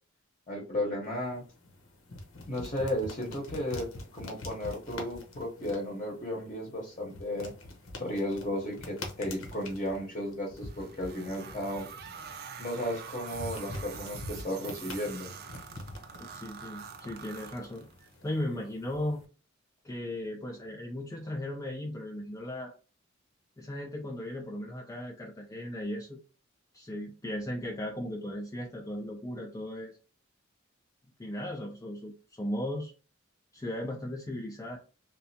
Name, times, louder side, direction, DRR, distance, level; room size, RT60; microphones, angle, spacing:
voice 1, 0.5-1.4 2.5-7.5 8.0-11.9 12.6-15.3, left 1 dB, 35° left, -1 dB, 0.8 m, -34 dB
sound 1, 1.0-19.2, left 2 dB, 90° left, 0.8 m, -45 dB
sound 2, 10.6-18.1, right 6 dB, 50° right, 0.5 m, -45 dB
voice 2, 16.3-17.9 18.2-19.2 19.8-22.7 23.6-26.2 26.7-30.0 31.2-32.9 33.5-34.8, left 1 dB, 15° left, 0 dB, 0.4 m, -36 dB
3.2 x 2.3 x 2.6 m, 0.35 s
head